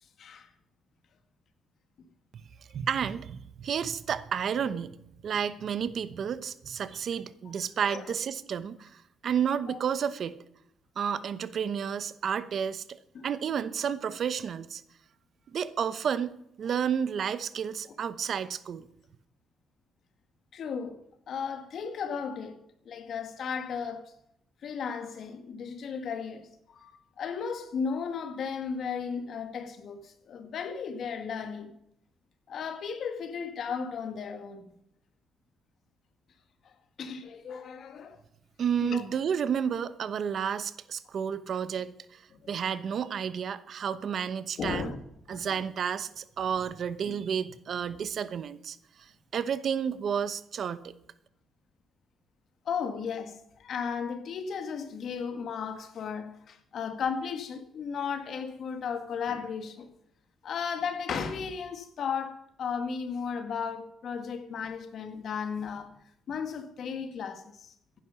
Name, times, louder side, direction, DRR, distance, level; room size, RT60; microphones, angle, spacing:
voice 1, 0.2-0.5 4.6-4.8 7.9-8.1 9.7-9.8 13.1-13.3 20.5-21.0 21.3-24.1 24.6-31.7 32.5-34.7 36.6-36.7 37.0-38.2 38.8-39.1 42.4-42.5 44.6-45.0 45.3-45.5 47.1-47.2 52.7-59.9 60.4-66.0 66.3-67.7, left 6 dB, 60° left, 1.8 m, -35 dB
voice 2, 2.7-5.0 5.2-10.4 11.0-14.8 15.5-18.9 38.6-42.2 42.5-44.9 45.3-50.9, right 7 dB, 60° right, 0.9 m, -31 dB
15.0 x 10.5 x 5.8 m
cardioid pair, 90°, 0 cm